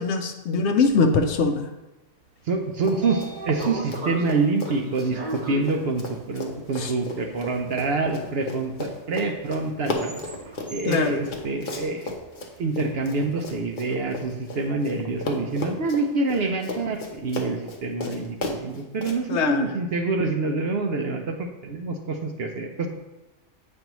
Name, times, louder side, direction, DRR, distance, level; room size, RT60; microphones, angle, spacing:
voice 1, 0.0-1.7 6.8-6.9 10.8-11.2 19.3-19.7, left 4 dB, 65° left, 6 dB, 0.8 m, -22 dB
Train / Sliding door, 2.4-12.6, right 2 dB, 40° right, 1.2 m, -39 dB
voice 2, 2.5-10.2 10.7-22.9, right 3 dB, 60° right, 4 dB, 0.7 m, -26 dB
Run, 2.8-3.3 3.6-15.0 15.2-19.2, left 2 dB, 45° left, 0.8 m, -34 dB
8.0 x 5.3 x 3.0 m, 1.0 s
omnidirectional pair, 1.4 m